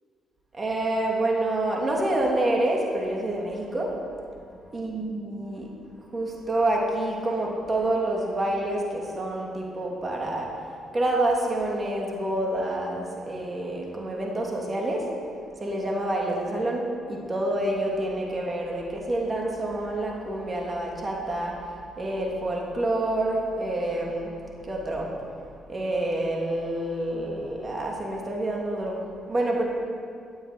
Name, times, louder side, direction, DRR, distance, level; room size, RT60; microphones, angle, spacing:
voice 1, 0.5-4.0 4.7-5.7 6.1-10.5 10.9-15.1 15.6-21.6 22.0-24.3 24.6-25.1 25.7-29.0 29.3-29.6, right 1 dB, 30° right, -1 dB, 2.9 m, -27 dB
15.0 x 7.8 x 7.9 m, 2.3 s
cardioid pair, 90°, 0 cm